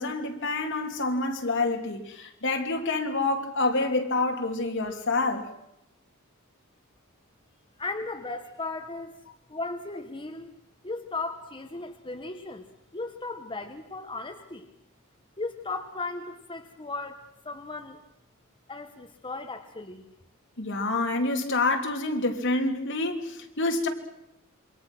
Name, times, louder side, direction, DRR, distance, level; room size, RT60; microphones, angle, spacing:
voice 1, 0.0-5.5 20.6-23.9, left 2 dB, 60° left, 2.9 m, -27 dB
voice 2, 7.8-9.1 9.5-10.5 10.8-12.6 12.9-14.7 15.4-18.0 18.7-20.0, left 3 dB, 25° left, 1.4 m, -36 dB
27.5 x 24.5 x 6.2 m
head